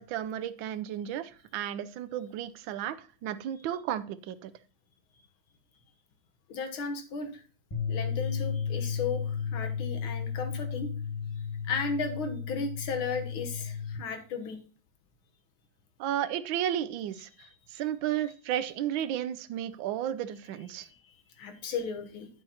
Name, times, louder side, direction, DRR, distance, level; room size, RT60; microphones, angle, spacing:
voice 1, 0.0-4.5 16.0-17.3 17.7-20.9, right 11 dB, 75° right, 13 dB, 1.3 m, -33 dB
voice 2, 6.5-7.4 7.9-10.9 11.7-14.6 17.4-17.5 20.8-21.0 21.4-22.3, left 4 dB, 80° left, 6 dB, 1.9 m, -35 dB
sound 1, 7.7-14.0, left 6 dB, 15° left, 1.7 m, -34 dB
11.0 x 8.9 x 2.9 m, 0.40 s
omnidirectional pair, 2.2 m